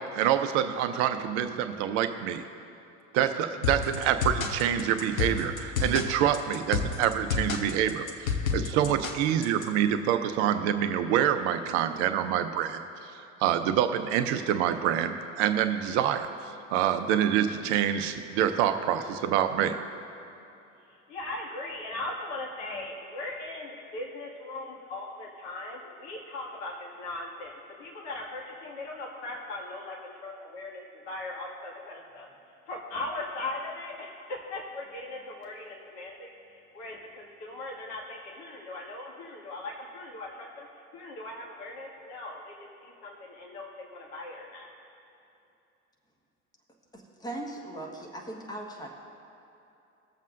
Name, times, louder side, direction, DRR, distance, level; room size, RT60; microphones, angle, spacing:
voice 1, 0.0-2.4 3.1-13.1 13.4-16.3 16.7-19.8, right 10 dB, 55° right, 8 dB, 0.7 m, -26 dB
sound 1, 3.6-9.6, left 6 dB, 80° left, 1.0 m, -30 dB
voice 2, 21.1-32.3 32.7-40.7 40.9-44.7, left 2 dB, 60° left, -2 dB, 2.2 m, -39 dB
voice 3, 46.9-47.9 48.1-48.9, right 1 dB, 10° left, 0 dB, 1.5 m, -38 dB
21.0 x 7.2 x 2.6 m, 2.8 s
figure-of-eight pair, 70°, 41 cm